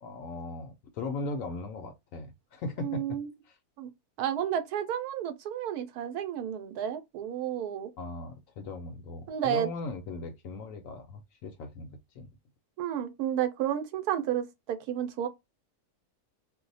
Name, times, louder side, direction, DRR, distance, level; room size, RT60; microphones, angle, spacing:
voice 1, 0.0-3.2 3.5-3.6 8.0-12.3, left 3 dB, 70° left, 0.9 m, -38 dB
voice 2, 2.8-3.3 3.8-3.9 4.2-7.9 9.3-9.7 12.8-15.3, right 10 dB, 85° right, 1.1 m, -31 dB
2.6 x 2.1 x 3.9 m
omnidirectional pair, 1.6 m